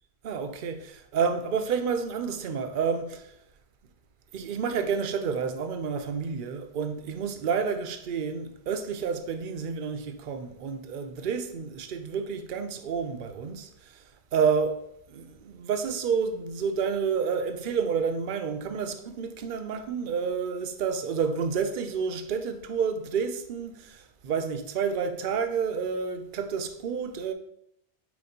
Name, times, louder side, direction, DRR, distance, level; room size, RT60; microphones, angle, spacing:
voice 1, 0.2-3.3 4.3-14.0 14.3-14.8 15.1-27.3, right 6 dB, 60° right, 0.7 m, -29 dB
7.8 x 4.7 x 2.8 m
omnidirectional pair, 1.1 m